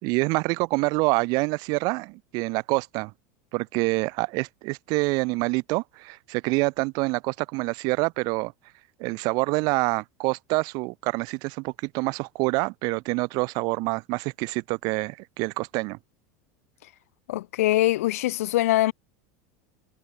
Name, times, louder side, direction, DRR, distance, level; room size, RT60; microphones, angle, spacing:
voice 1, 0.0-3.1 3.5-8.5 9.0-16.0, right 27 dB, 55° right, 1.7 m, -26 dB
voice 2, 17.3-18.9, left 16 dB, 85° left, 1.5 m, -23 dB
supercardioid pair, 130°, 8 cm